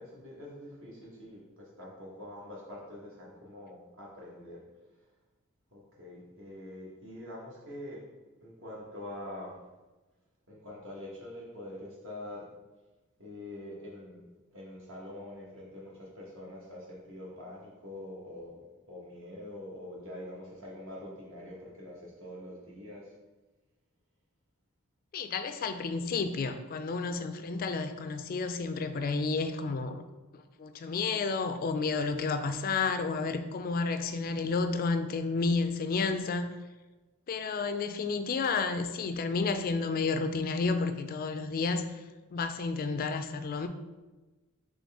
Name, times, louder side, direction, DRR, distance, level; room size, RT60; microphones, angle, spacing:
voice 1, 0.0-4.6 5.7-8.0 8.4-9.6 10.5-12.5 13.2-14.2 14.5-23.1, left 1 dB, 60° right, -4 dB, 1.4 m, -45 dB
voice 2, 25.1-30.0 30.3-36.5 37.3-41.9 42.3-43.7, left 4 dB, 40° left, 8 dB, 0.3 m, -31 dB
4.0 x 3.2 x 3.5 m, 1.2 s
head